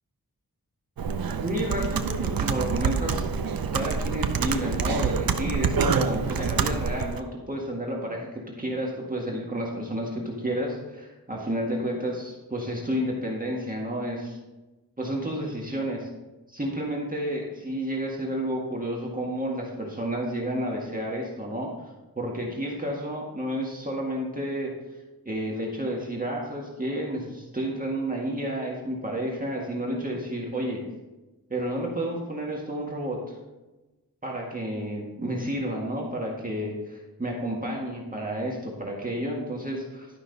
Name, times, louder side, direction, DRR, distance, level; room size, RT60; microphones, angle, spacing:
Computer keyboard, 1.0-7.2, right 5 dB, 75° right, 0.7 m, -27 dB
voice 1, 1.4-3.3 3.7-14.4 15.0-16.1 16.5-21.7 22.2-24.7 25.3-30.8 31.5-33.4 34.2-40.1, right 1 dB, 25° right, -2 dB, 1.8 m, -31 dB
11.5 x 5.8 x 4.1 m, 1.1 s
wide cardioid pair, 85°, 35 cm